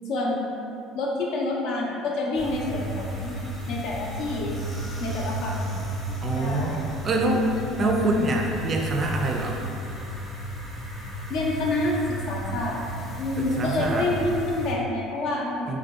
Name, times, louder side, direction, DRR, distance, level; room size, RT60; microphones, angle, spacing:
voice 1, 0.1-0.5 0.9-3.4 3.7-4.5 5.0-5.7 6.4-6.8 7.5-8.3 11.3-12.8 13.2-15.8, left 2 dB, 60° left, -3 dB, 0.4 m, -28 dB
sound 1, 2.4-14.7, right 1 dB, 20° left, 0.6 m, -33 dB
voice 2, 6.2-9.6 13.4-14.1 15.7-15.8, right 2 dB, 35° right, 1 dB, 0.3 m, -26 dB
2.5 x 2.2 x 2.3 m, 2.6 s
hypercardioid pair, 65°, 0 cm